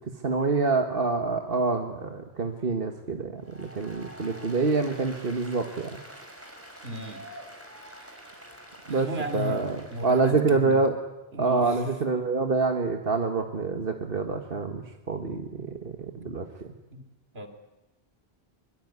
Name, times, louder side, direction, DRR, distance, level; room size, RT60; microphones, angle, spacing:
voice 1, 0.2-5.9 8.9-11.0 11.4-15.9 16.2-16.5, right 4 dB, 65° right, 5 dB, 1.8 m, -26 dB
Applause, 3.4-10.4, equal, 15° right, 5.1 m, -46 dB
voice 2, 6.8-7.3 7.9-8.3 8.9-10.9 11.3-12.0 16.9-17.0 17.3-17.5, equal, 80° right, 8 dB, 3.4 m, -36 dB
24.5 x 23.5 x 9.7 m, 1.0 s
omnidirectional pair, 1.0 m